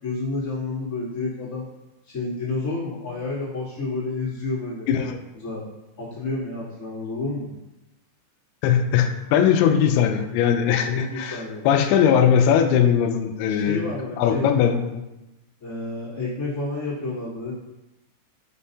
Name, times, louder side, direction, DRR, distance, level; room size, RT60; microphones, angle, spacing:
voice 1, 0.0-1.7 2.0-4.9 5.3-5.6 6.0-7.5 10.9-11.7 13.6-14.5 15.6-17.5, left 3 dB, 30° left, -11 dB, 1.9 m, -30 dB
voice 2, 4.9-5.2 8.6-13.8 14.2-15.0, left 8 dB, 80° left, 6 dB, 2.8 m, -20 dB
8.5 x 5.5 x 2.8 m, 0.99 s
omnidirectional pair, 5.7 m